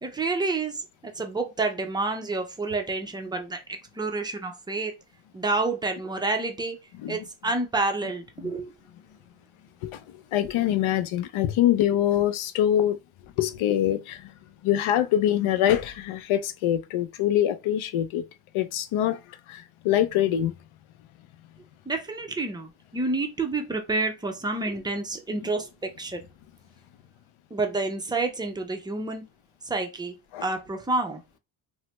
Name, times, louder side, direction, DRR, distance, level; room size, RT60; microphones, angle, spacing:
voice 1, 0.0-3.6 4.0-4.9 5.3-6.8 7.1-8.7 21.9-26.2 27.5-29.2 29.7-30.1 30.4-31.2, right 3 dB, 10° right, 0.4 m, -29 dB
voice 2, 10.3-13.0 13.4-14.3 14.6-18.2 18.5-19.2 19.5-20.5 25.4-25.5 30.3-30.5, left 11 dB, 80° left, 0.5 m, -24 dB
3.2 x 2.1 x 2.9 m
wide cardioid pair, 135°, 48 cm